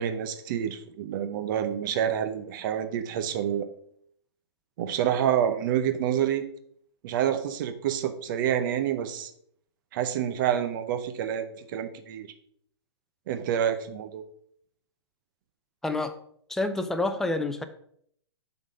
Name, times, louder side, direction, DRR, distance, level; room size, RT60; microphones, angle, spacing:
voice 1, 0.0-3.7 4.8-6.4 7.0-9.3 9.9-12.3 13.3-14.2, right 9 dB, 50° right, 9 dB, 0.8 m, -28 dB
voice 2, 15.8-16.2 16.5-17.6, left 2 dB, 5° left, 7 dB, 0.5 m, -28 dB
7.4 x 4.0 x 5.2 m, 0.66 s
hypercardioid pair, 125°, 14 cm